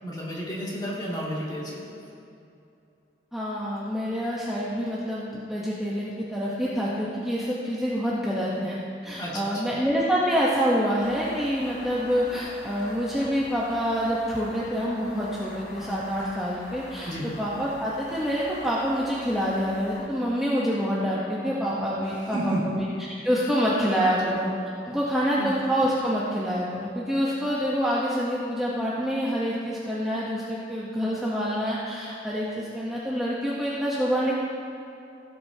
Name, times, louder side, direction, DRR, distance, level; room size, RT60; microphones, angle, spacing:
voice 1, 0.0-2.0 9.2-9.5 17.0-17.2 22.3-22.6 24.2-24.3 25.4-25.5, equal, 25° left, -6 dB, 2.4 m, -32 dB
voice 2, 3.3-24.5 24.8-34.3, equal, ahead, -7 dB, 0.9 m, -27 dB
sound 1, 11.0-20.1, left 1 dB, 65° left, 2.2 m, -44 dB
16.0 x 8.4 x 2.8 m, 2.6 s
head